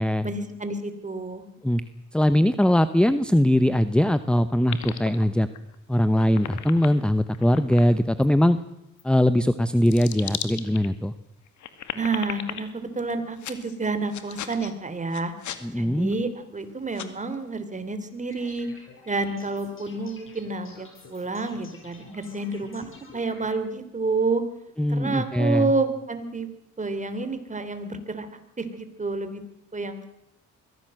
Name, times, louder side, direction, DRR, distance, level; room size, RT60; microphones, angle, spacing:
voice 1, 0.2-1.4 11.9-15.3 15.7-18.7 19.1-22.8 23.1-24.4 24.9-26.5 26.8-29.4 29.7-30.1, right 3 dB, 25° right, 9 dB, 3.4 m, -29 dB
voice 2, 2.1-5.5 5.9-8.6 9.0-11.1 15.6-16.2 24.8-25.7, left 1 dB, 5° left, 13 dB, 0.9 m, -21 dB
sound 1, 4.7-5.7 6.1-7.9 8.2-8.3 9.0-9.1 9.7-10.9 11.5-12.6 13.4-13.8 14.1-14.7 15.1-15.6 16.1-16.2 16.6-16.7 16.9-17.1, left 10 dB, 75° left, 2.2 m, -36 dB
sound 2, 18.3-23.5, left 3 dB, 45° left, 7.5 m, -49 dB
23.0 x 16.5 x 7.7 m, 0.88 s
cardioid pair, 90°, 30 cm